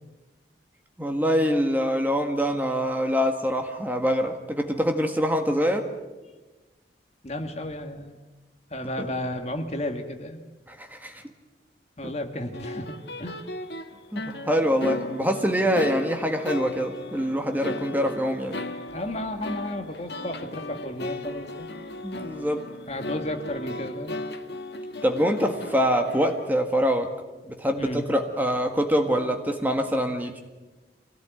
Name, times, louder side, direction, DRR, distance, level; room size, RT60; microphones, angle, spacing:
voice 1, 1.0-5.9 9.0-9.1 10.7-11.2 12.0-12.1 14.1-18.6 22.0-22.7 25.0-27.1 27.4-30.4, equal, 10° right, 4 dB, 1.7 m, -25 dB
voice 2, 7.2-8.2 8.7-10.4 12.0-13.5 18.9-21.7 22.9-24.2 27.8-28.1, left 1 dB, 35° left, 6 dB, 1.8 m, -33 dB
sound 1, 12.5-26.5, left 2 dB, 70° left, 1.5 m, -36 dB
25.0 x 17.5 x 9.2 m, 1.2 s
head